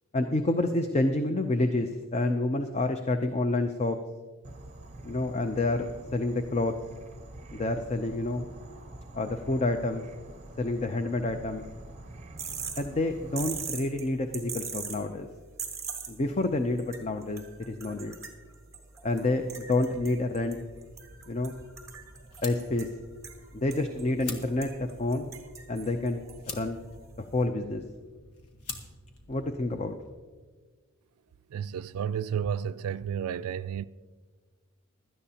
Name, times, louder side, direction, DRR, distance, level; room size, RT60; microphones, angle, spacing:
voice 1, 0.1-4.0 5.0-6.7 7.5-8.4 9.1-10.0 10.6-11.6 12.8-15.3 16.1-18.2 19.0-20.6 21.3-21.5 22.4-22.9 23.5-25.3 25.7-26.2 26.5-26.8 27.2-27.8 29.3-30.0, left 2 dB, 30° left, 0.5 m, -28 dB
Insect / Frog, 4.4-13.6, right 2 dB, 30° right, 0.8 m, -46 dB
sound 1, 12.4-27.4, right 6 dB, 15° right, 1.4 m, -43 dB
sound 2, 19.8-30.1, left 3 dB, 85° left, 1.4 m, -47 dB
voice 2, 31.5-33.9, right 8 dB, 75° right, 0.3 m, -32 dB
16.5 x 12.0 x 2.8 m
head